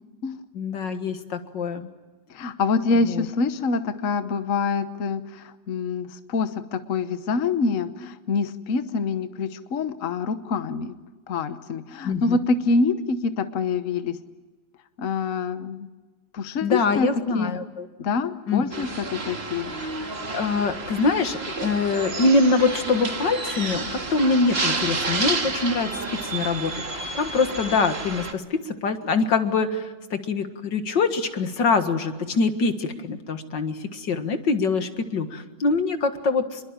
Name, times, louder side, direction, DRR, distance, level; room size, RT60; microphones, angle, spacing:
voice 1, 0.5-1.9 3.1-3.3 12.0-12.4 16.6-17.9 18.5-18.8 19.8-25.9 26.2-36.7, left 4 dB, 75° left, 8 dB, 2.4 m, -24 dB
voice 2, 2.3-10.9 11.3-14.2 15.0-15.9 16.3-17.1 17.3-17.5 18.0-19.7, left 4 dB, 50° left, 10 dB, 1.3 m, -26 dB
sound 1, 18.7-28.3, right 3 dB, 35° right, 2.1 m, -30 dB
27.5 x 22.5 x 8.9 m, 1.2 s
omnidirectional pair, 2.0 m